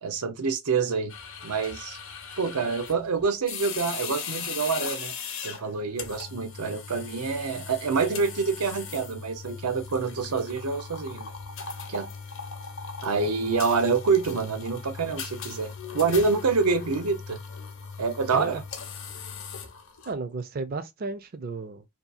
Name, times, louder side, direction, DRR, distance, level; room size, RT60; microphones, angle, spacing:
voice 1, 0.0-1.1 1.4-2.0 2.4-5.1 5.4-11.3 11.9-12.1 13.0-17.4 18.0-18.6, right 4 dB, 90° right, 0.6 m, -27 dB
sound 1, 1.1-20.1, left 6 dB, 60° left, 0.7 m, -39 dB
voice 2, 20.1-21.8, right 3 dB, 40° right, 0.4 m, -33 dB
2.7 x 2.3 x 2.4 m
head